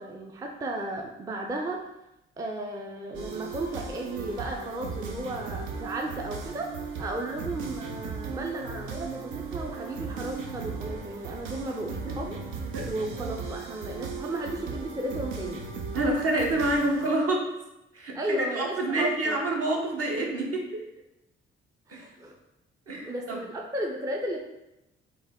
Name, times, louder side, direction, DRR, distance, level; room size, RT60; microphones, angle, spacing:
voice 1, 0.0-1.9 2.4-6.7 7.0-12.4 12.9-15.7 18.1-19.4 21.9-22.4 23.0-24.4, right 1 dB, 10° right, 1 dB, 0.4 m, -34 dB
sound 1, 3.1-17.2, right 5 dB, 80° right, 0.5 m, -37 dB
voice 2, 15.9-17.5 17.9-20.8 21.9-22.0 22.9-23.4, right 1 dB, 50° right, 0 dB, 0.9 m, -27 dB
3.4 x 2.2 x 3.5 m, 0.90 s
hypercardioid pair, 45°, 30 cm